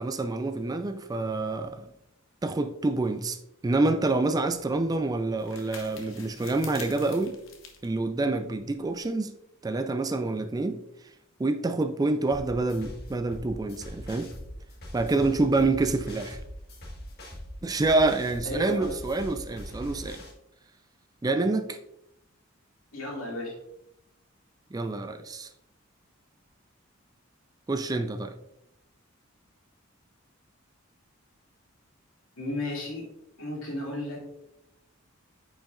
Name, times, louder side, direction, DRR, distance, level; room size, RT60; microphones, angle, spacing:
voice 1, 0.0-1.9 2.4-3.4 3.6-7.4 7.8-9.3 9.6-10.8 11.4-14.3 14.9-16.4 17.6-20.2 21.2-21.8 24.7-25.5 27.7-28.3, right 2 dB, 20° right, 0.4 m, -27 dB
sound 1, 3.9-9.1, left 5 dB, 70° left, 1.0 m, -48 dB
sound 2, 12.3-20.3, equal, 50° left, 1.5 m, -42 dB
voice 2, 18.4-18.9 22.9-23.6 32.4-33.1 33.4-34.2, left 1 dB, 85° left, 2.3 m, -33 dB
8.9 x 5.1 x 2.4 m
head